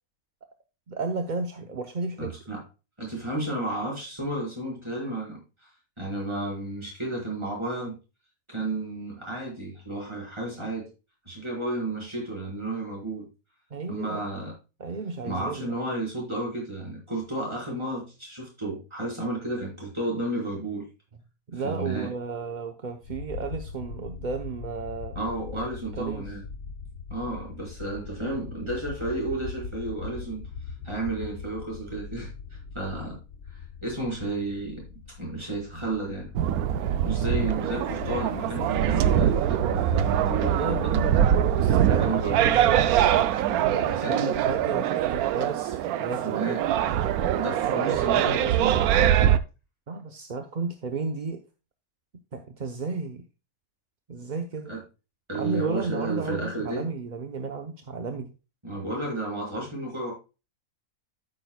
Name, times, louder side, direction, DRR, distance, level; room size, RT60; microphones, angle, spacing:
voice 1, 0.9-2.3 13.7-14.2 14.8-15.8 21.5-25.1 26.0-26.3 40.4-43.0 43.7-46.4 49.9-51.4 52.3-53.2 54.1-54.8 55.3-58.3, right 4 dB, 40° right, 6 dB, 0.7 m, -33 dB
voice 2, 2.2-2.6 3.0-5.4 6.0-7.9 8.5-10.9 11.2-13.3 13.9-14.5 15.2-20.8 21.6-22.1 25.1-26.4 27.1-30.4 30.8-32.3 32.7-33.2 33.8-34.8 35.2-36.3 37.0-41.1 42.0-42.6 44.0-44.4 46.2-46.6 47.3-48.9 54.7-54.8 55.3-56.8 58.6-60.1, right 2 dB, 20° right, -3 dB, 4.6 m, -32 dB
sound 1, 23.0-42.9, left 4 dB, 85° left, 1.4 m, -40 dB
sound 2, 36.4-49.4, right 10 dB, 85° right, 1.1 m, -23 dB
sound 3, 39.1-44.8, left 7 dB, 70° left, 1.7 m, -46 dB
13.5 x 6.5 x 2.2 m, 0.29 s
omnidirectional pair, 1.5 m